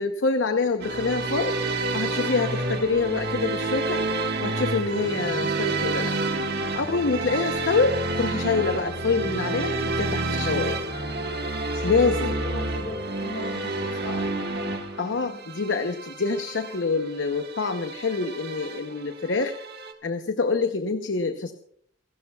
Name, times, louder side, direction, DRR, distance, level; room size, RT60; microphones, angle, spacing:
voice 1, 0.0-1.5 1.9-4.0 4.4-6.2 6.7-10.8 11.8-12.3 15.0-19.5 20.0-21.5, left 4 dB, 70° left, 7 dB, 0.8 m, -26 dB
sound 1, 0.8-19.9, right 2 dB, 60° right, 1.5 m, -29 dB
voice 2, 11.6-14.2, left 1 dB, 90° left, -1 dB, 7.5 m, -38 dB
28.5 x 12.5 x 2.3 m, 0.63 s
head